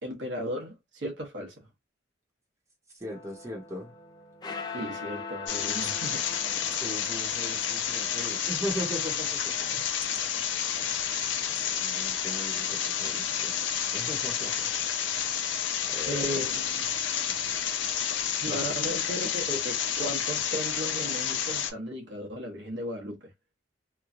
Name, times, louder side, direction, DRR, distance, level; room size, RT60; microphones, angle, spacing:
voice 1, 0.0-1.5 4.7-6.3 9.7-9.9 10.2-10.5 16.1-16.8 18.4-23.2, equal, 65° right, 1.0 m, -35 dB
voice 2, 2.9-3.9 6.6-9.6 10.8-11.0 11.6-13.7 13.9-14.7 15.2-15.5 15.9-16.4 17.3-17.4, equal, 15° right, 0.9 m, -39 dB
sound 1, 3.1-11.6, left 4 dB, 20° left, 0.4 m, -43 dB
sound 2, 5.5-21.7, left 8 dB, 70° left, 0.6 m, -30 dB
3.1 x 2.2 x 2.5 m
head